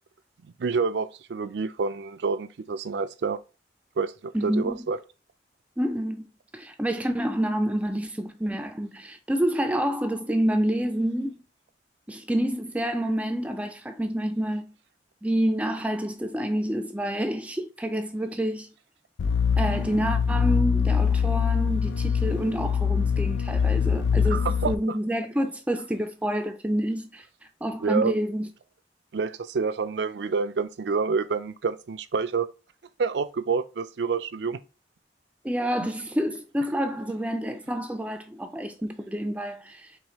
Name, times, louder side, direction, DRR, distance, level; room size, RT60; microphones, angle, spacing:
voice 1, 0.4-3.4 4.0-5.0 24.3-25.0 27.8-28.1 29.1-32.5 33.0-34.6 35.8-35.9, right 5 dB, 70° right, 0.4 m, -28 dB
voice 2, 4.3-4.8 5.8-11.4 12.1-14.7 15.2-18.7 19.6-27.2 27.6-28.5 35.4-39.9, equal, 10° right, 0.4 m, -28 dB
sound 1, 19.2-24.7, left 6 dB, 85° left, 0.4 m, -23 dB
4.9 x 3.1 x 3.0 m
head